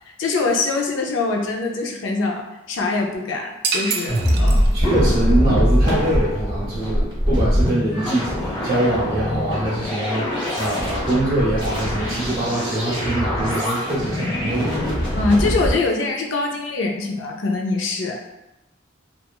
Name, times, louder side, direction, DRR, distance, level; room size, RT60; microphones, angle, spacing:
voice 1, 0.1-4.6 15.1-18.3, left 3 dB, 70° left, 1 dB, 0.4 m, -23 dB
sound 1, 3.6-5.1, right 5 dB, 55° right, 0.3 m, -27 dB
sound 2, 4.1-15.7, equal, 25° left, 0.9 m, -22 dB
voice 2, 4.7-14.8, right 1 dB, 30° right, -11 dB, 0.8 m, -23 dB
2.9 x 2.3 x 2.3 m, 0.96 s
head